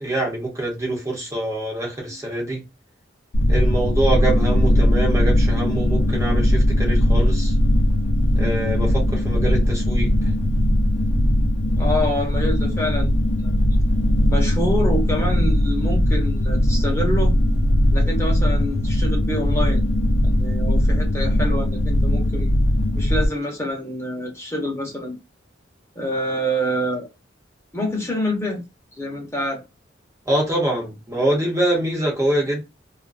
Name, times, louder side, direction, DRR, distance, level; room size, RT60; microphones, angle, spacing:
voice 1, 0.0-2.6 3.5-7.5 8.4-10.1 30.3-32.6, right 1 dB, 15° right, 0.7 m, -24 dB
sound 1, 3.3-23.3, left 1 dB, 80° left, 0.6 m, -19 dB
voice 2, 11.7-13.1 13.4-13.6 14.3-17.3 17.9-19.8 20.2-22.5 22.9-25.2 25.9-27.1 27.7-28.6 29.0-29.6, equal, 15° left, 0.8 m, -26 dB
2.4 x 2.3 x 2.4 m
head